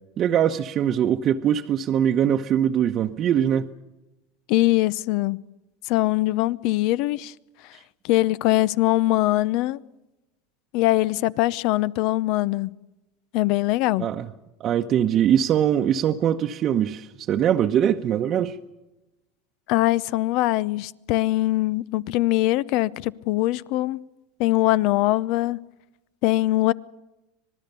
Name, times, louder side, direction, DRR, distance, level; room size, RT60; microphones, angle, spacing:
voice 1, 0.2-3.7 14.0-14.3 14.6-18.6, right 9 dB, 40° right, 1.0 m, -22 dB
voice 2, 4.5-5.4 5.8-7.3 8.0-9.8 10.7-12.7 13.3-14.1 19.7-24.0 24.4-25.6 26.2-26.7, left 17 dB, 60° left, 0.7 m, -22 dB
25.5 x 19.5 x 6.9 m
hypercardioid pair, 100°, 0 cm